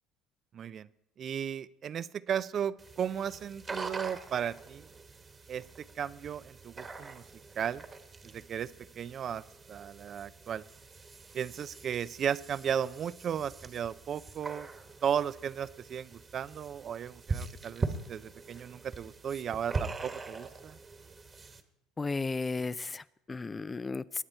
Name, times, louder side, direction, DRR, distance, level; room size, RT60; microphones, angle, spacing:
voice 1, 0.5-0.9 1.2-4.9 5.5-5.6 6.0-7.2 7.6-7.8 8.3-8.7 9.0-9.4 9.7-10.6 11.3-14.7 15.0-20.8, right 8 dB, 50° right, 15 dB, 0.5 m, -35 dB
sound 1, 2.8-21.6, right 4 dB, 30° right, 1.4 m, -42 dB
voice 2, 22.0-24.2, left 3 dB, 25° left, 16 dB, 0.4 m, -34 dB
21.0 x 8.8 x 4.3 m, 0.84 s
supercardioid pair, 80°, 0 cm